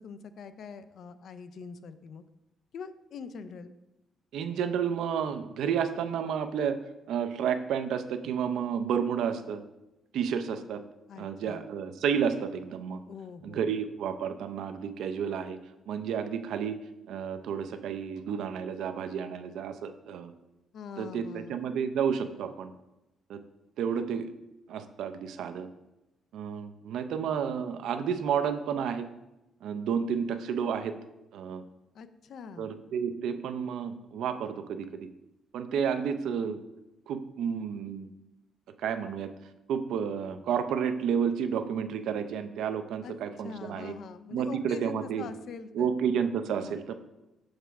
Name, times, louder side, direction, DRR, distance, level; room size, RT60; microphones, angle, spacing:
voice 1, 0.0-2.2 2.7-3.7 11.1-11.7 13.1-13.7 20.7-21.6 31.9-32.8 43.0-43.1 43.4-45.9 46.6-46.8, left 6 dB, 50° left, 11 dB, 0.4 m, -43 dB
voice 2, 4.3-6.8 7.1-9.6 10.1-10.8 11.2-13.0 13.4-15.6 15.9-16.8 17.1-20.3 21.0-22.7 23.3-23.4 23.8-24.3 24.7-25.7 26.3-29.1 29.6-30.9 31.3-31.6 32.6-35.1 35.5-36.6 37.1-38.1 38.8-39.3 39.7-43.9 44.3-45.3 45.7-46.9, right 7 dB, 70° right, 10 dB, 0.5 m, -31 dB
6.5 x 3.4 x 5.9 m, 0.95 s
cardioid pair, 170°, 0 cm